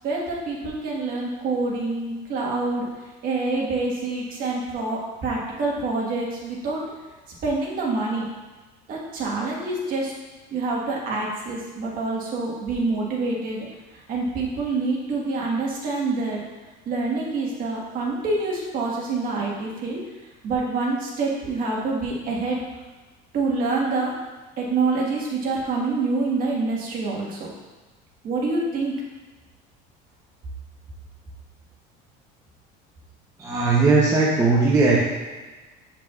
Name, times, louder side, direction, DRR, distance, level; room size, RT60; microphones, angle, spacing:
voice 1, 0.0-2.9 3.2-6.8 7.4-8.2 8.9-10.1 10.5-13.7 14.1-16.4 16.9-20.0 20.4-22.6 23.3-24.1 24.6-27.5 28.2-28.9, right 3 dB, 45° right, -3 dB, 1.5 m, -26 dB
voice 2, 33.4-35.0, right 3 dB, 15° right, -5 dB, 0.8 m, -18 dB
7.4 x 5.8 x 2.4 m, 1.2 s
cardioid pair, 155°, 21 cm